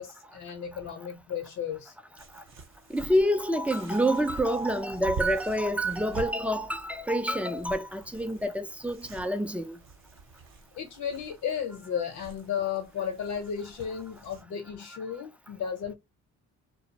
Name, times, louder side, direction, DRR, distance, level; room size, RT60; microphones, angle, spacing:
voice 1, 0.0-1.9 10.7-15.9, left 8 dB, 75° left, 0.8 m, -34 dB
sound 1, 2.2-14.4, right 4 dB, 45° right, 0.8 m, -45 dB
voice 2, 2.9-9.8, equal, 5° right, 0.3 m, -27 dB
2.4 x 2.0 x 2.7 m
cardioid pair, 90°, 30 cm